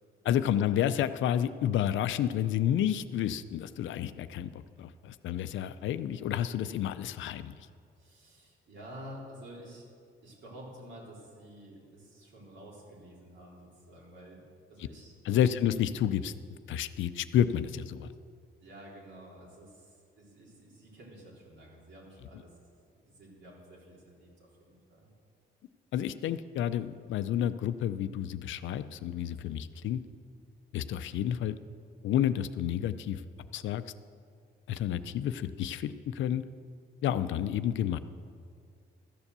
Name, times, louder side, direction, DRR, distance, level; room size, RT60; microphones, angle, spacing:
voice 1, 0.2-7.5 15.2-16.3 16.7-18.1 25.9-30.0 30.7-31.6 32.0-33.2 33.5-33.8 34.7-36.4 37.0-38.0, left 10 dB, 75° left, 12 dB, 0.5 m, -30 dB
voice 2, 8.0-9.9 10.2-15.5 18.6-22.5 23.1-25.1, equal, 70° right, -4 dB, 3.9 m, -50 dB
13.5 x 7.2 x 6.8 m, 2.2 s
cardioid pair, 90°, 20 cm